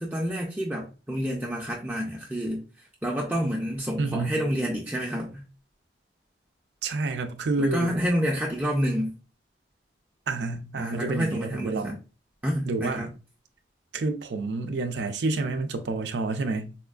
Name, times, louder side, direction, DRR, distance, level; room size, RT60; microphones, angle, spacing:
voice 1, 0.0-2.6 3.0-5.4 7.6-9.1 10.8-12.0 12.4-13.1, equal, 10° right, 0.4 m, -28 dB
voice 2, 4.0-4.4 6.8-8.0 10.3-12.0 12.7-13.2 13.9-16.8, right 3 dB, 70° right, 0.4 m, -29 dB
4.2 x 2.3 x 2.3 m
head